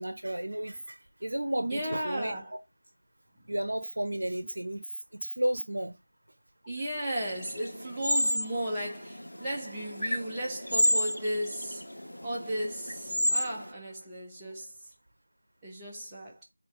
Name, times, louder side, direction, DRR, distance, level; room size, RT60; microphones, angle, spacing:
voice 1, 0.0-2.4 3.5-4.8 5.1-6.0, right 1 dB, 60° right, 1.0 m, -33 dB
voice 2, 1.6-2.5 6.7-11.9 12.2-14.9 15.6-16.4, right 1 dB, 5° right, 1.6 m, -35 dB
sound 1, 7.2-13.7, equal, 70° left, 1.4 m, -31 dB
6.9 x 4.5 x 3.7 m
figure-of-eight pair, 170°, 0 cm